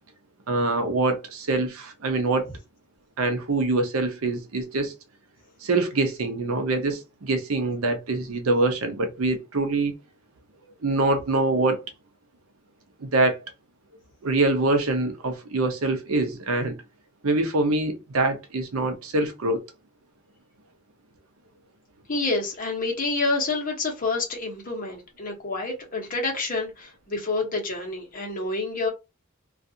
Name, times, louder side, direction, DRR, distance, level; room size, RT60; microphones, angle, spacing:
voice 1, 0.5-2.5 3.2-4.9 5.6-9.9 10.8-11.8 13.0-13.4 14.2-16.7 17.2-19.6, right 2 dB, 85° right, 0.7 m, -24 dB
voice 2, 22.1-28.9, left 3 dB, 40° left, 1.0 m, -28 dB
2.4 x 2.4 x 2.7 m
head